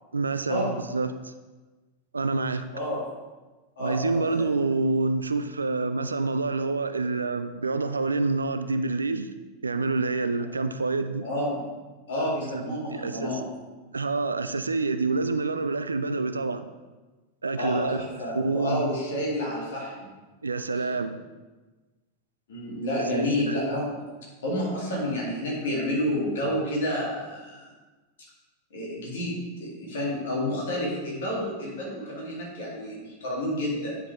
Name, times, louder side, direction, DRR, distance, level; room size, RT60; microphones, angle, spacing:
voice 1, 0.1-1.3 2.1-2.7 3.8-9.3 9.6-11.3 12.4-13.4 13.9-16.7 17.4-18.1 18.3-18.9 20.4-21.2 23.1-23.6, right 3 dB, 75° right, 10 dB, 0.3 m, -27 dB
voice 2, 2.7-3.1 3.8-4.5 11.2-11.7 12.1-13.4 17.6-20.1 22.5-23.9 24.4-27.7 28.7-34.0, left 1 dB, 60° left, -4 dB, 2.1 m, -29 dB
9.6 x 4.7 x 3.3 m, 1.2 s
figure-of-eight pair, 90°, 0 cm